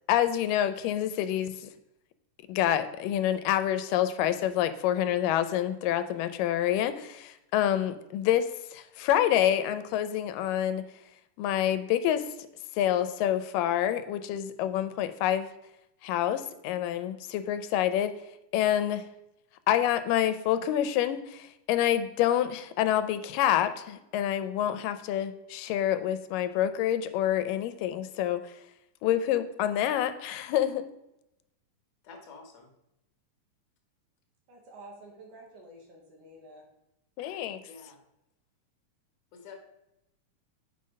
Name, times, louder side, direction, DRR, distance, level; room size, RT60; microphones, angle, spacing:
voice 1, 0.1-1.7 2.5-10.8 11.4-12.3 12.8-15.5 16.0-18.2 18.5-19.0 19.7-28.4 29.0-30.9 37.2-37.6, left 11 dB, 90° left, 11 dB, 2.3 m, -27 dB
voice 2, 32.0-32.7 37.6-38.0 39.3-39.6, left 5 dB, 55° left, 2 dB, 2.4 m, -48 dB
voice 3, 34.5-36.6, right 1 dB, 75° right, 0 dB, 3.2 m, -50 dB
8.1 x 5.5 x 5.3 m, 0.87 s
omnidirectional pair, 3.8 m